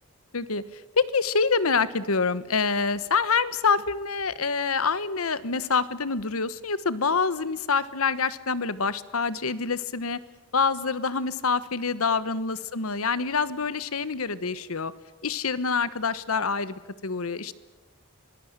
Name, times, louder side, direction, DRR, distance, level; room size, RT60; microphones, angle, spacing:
voice 1, 1.0-10.2 10.5-14.9 15.2-17.5, left 5 dB, 85° left, 16 dB, 1.2 m, -26 dB
25.0 x 19.0 x 8.9 m, 1.2 s
head